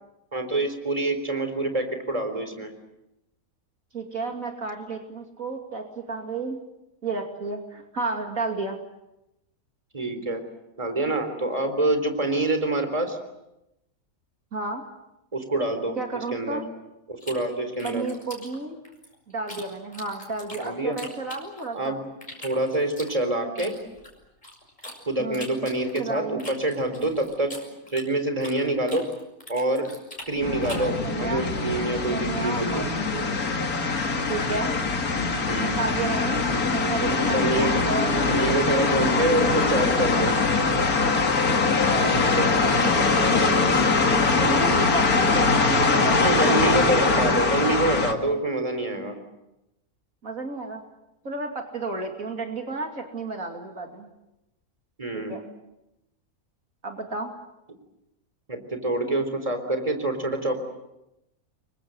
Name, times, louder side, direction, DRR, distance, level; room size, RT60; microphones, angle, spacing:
voice 1, 0.3-2.7 9.9-10.4 10.8-13.2 15.3-16.0 16.3-16.6 17.1-18.0 20.6-21.0 21.7-22.0 22.4-23.7 25.1-27.5 27.9-29.0 29.5-29.9 30.3-32.8 35.5-35.8 37.0-37.8 38.2-40.3 42.1-42.5 44.3-44.6 46.2-49.2 55.0-55.4 58.5-60.6, right 2 dB, 25° right, 7 dB, 3.9 m, -26 dB
voice 2, 3.9-6.6 7.0-8.8 14.5-14.8 16.0-16.6 17.8-18.8 19.3-22.0 25.2-25.5 26.0-26.4 30.6-31.5 32.1-33.4 34.3-34.7 35.6-36.4 36.7-38.2 39.0-39.9 41.9-43.8 44.3-47.3 50.2-50.8 51.2-54.1 55.1-55.4 56.8-57.3, right 3 dB, 65° right, 3 dB, 3.0 m, -32 dB
sound 1, 17.2-19.6 19.9-21.8 22.2-25.0 25.3-28.6 28.9-30.9, left 1 dB, 30° left, 7.0 m, -42 dB
sound 2, 30.4-48.1, left 4 dB, 80° left, 2.5 m, -22 dB
29.0 x 24.0 x 7.8 m, 0.91 s
omnidirectional pair, 1.5 m